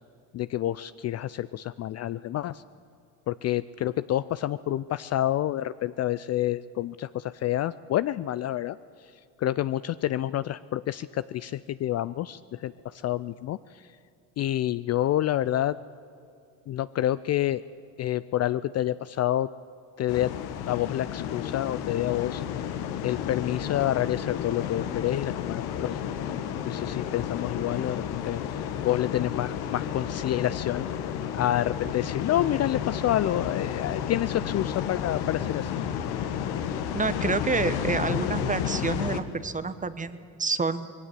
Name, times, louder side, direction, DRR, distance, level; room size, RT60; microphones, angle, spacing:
voice 1, 0.3-2.6 3.3-8.8 9.4-13.6 14.4-15.8 16.7-17.6 18.0-19.5 20.0-20.3 20.7-22.4 23.0-26.0 26.6-30.9 31.3-35.7, left 13 dB, 40° left, 16 dB, 0.4 m, -28 dB
sound 1, 20.1-39.2, left 9 dB, 65° left, 1.5 m, -32 dB
voice 2, 36.9-40.9, right 4 dB, 20° right, 14 dB, 1.0 m, -28 dB
20.0 x 17.0 x 8.4 m, 2.5 s
hypercardioid pair, 70°, 41 cm